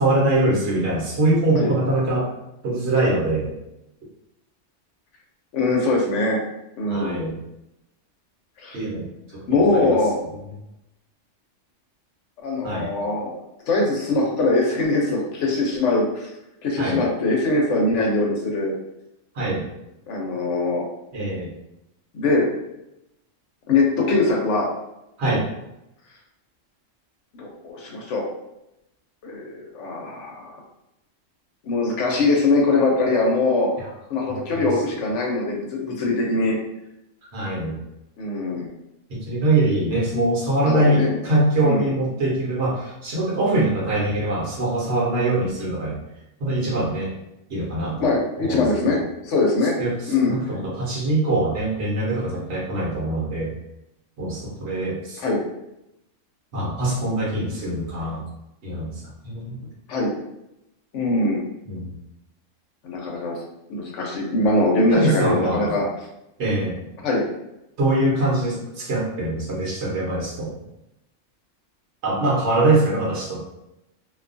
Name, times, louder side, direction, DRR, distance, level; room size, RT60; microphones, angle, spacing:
voice 1, 0.0-2.3 2.6-3.5 6.9-7.4 8.7-9.6 12.6-12.9 16.8-17.0 19.3-19.7 21.1-21.5 25.2-25.5 33.8-33.9 34.3-34.7 37.3-37.8 39.1-46.0 46.4-47.1 47.5-48.1 48.4-49.0 49.8-49.9 50.3-53.5 54.2-55.2 56.5-58.2 58.6-58.9 59.2-59.6 61.6-61.9 64.9-65.8 66.4-66.8 67.8-70.5 72.0-73.4, right 2 dB, 60° right, -4 dB, 1.1 m, -23 dB
voice 2, 5.5-6.4 6.8-7.2 8.6-8.8 9.5-10.2 12.4-13.4 13.7-16.3 16.6-18.7 20.1-20.8 22.1-22.5 23.7-24.7 27.3-28.2 29.2-30.6 31.6-33.7 34.1-36.6 38.2-38.7 40.6-41.1 41.6-41.9 48.0-49.8 50.1-50.3 55.2-55.4 59.9-60.1 60.9-61.4 62.8-63.4 63.7-65.8 67.0-67.2, left 2 dB, 70° left, -1 dB, 1.0 m, -22 dB
2.6 x 2.3 x 2.5 m, 0.87 s
omnidirectional pair, 1.3 m